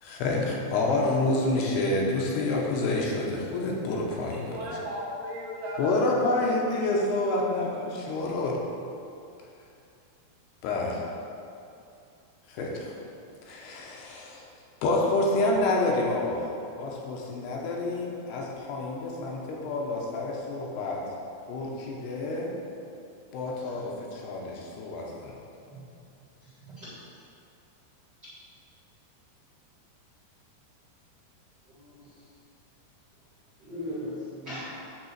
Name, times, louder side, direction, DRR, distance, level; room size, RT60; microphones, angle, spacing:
voice 1, 0.0-4.6 5.8-8.6 10.6-11.0 12.5-12.9 13.5-14.4 14.8-16.5 16.8-21.0 21.5-22.5 23.3-25.3, left 2 dB, 80° left, -2 dB, 2.8 m, -28 dB
voice 2, 4.3-6.5, equal, 75° right, -3 dB, 2.5 m, -36 dB
voice 3, 31.7-32.1 33.6-34.6, left 1 dB, 45° right, -11 dB, 1.4 m, -38 dB
8.9 x 3.7 x 6.6 m, 2.6 s
omnidirectional pair, 4.9 m